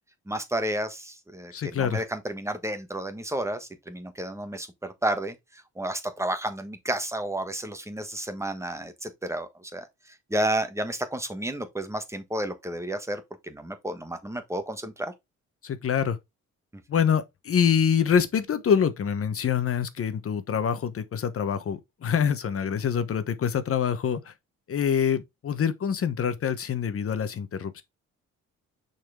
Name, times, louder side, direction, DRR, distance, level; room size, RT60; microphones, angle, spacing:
voice 1, 0.3-9.9 10.3-15.1, right 1 dB, 10° right, 1.4 m, -31 dB
voice 2, 1.5-2.0 15.6-16.2 16.9-24.3 24.7-27.8, left 7 dB, 50° left, 1.0 m, -25 dB
6.1 x 4.3 x 3.6 m
cardioid pair, 90°, 30 cm